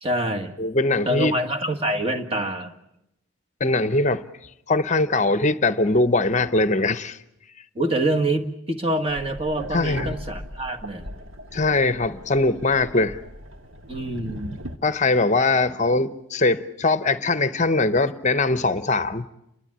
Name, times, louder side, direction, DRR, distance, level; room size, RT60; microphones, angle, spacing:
voice 1, 0.0-0.5 1.0-2.7 7.7-11.2 13.9-14.6, right 1 dB, 25° right, 1.6 m, -26 dB
voice 2, 0.6-1.3 3.6-4.2 4.7-7.2 9.7-10.1 11.5-13.2 14.8-19.3, left 3 dB, 30° left, 0.8 m, -21 dB
sound 1, 9.1-14.8, equal, 60° right, 1.7 m, -39 dB
30.0 x 12.5 x 9.9 m
head